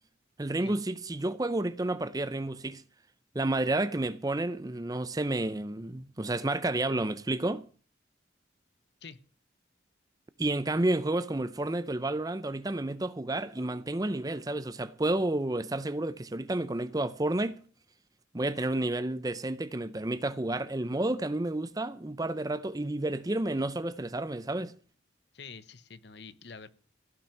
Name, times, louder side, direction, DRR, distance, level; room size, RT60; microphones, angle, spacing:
voice 1, 0.4-2.8 3.3-7.7 10.4-17.6 18.3-24.7, right 2 dB, 20° right, 0.6 m, -30 dB
voice 2, 25.3-26.7, left 5 dB, 60° left, 1.0 m, -47 dB
16.0 x 6.1 x 9.0 m
head